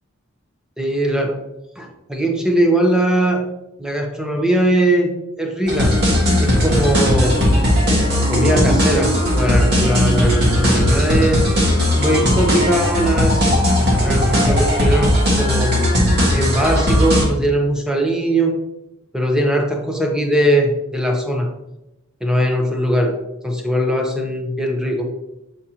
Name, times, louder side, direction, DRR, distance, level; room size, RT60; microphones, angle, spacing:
voice 1, 0.8-1.4 1.8-3.4 3.8-5.1 5.4-6.0 6.4-7.4 8.3-11.4 12.0-15.7 16.3-18.5 19.1-21.5 22.2-25.1, right 1 dB, 5° right, 2 dB, 0.8 m, -20 dB
sound 1, 5.7-17.2, equal, 50° right, 1.8 m, -17 dB
7.7 x 5.0 x 2.9 m, 0.91 s
head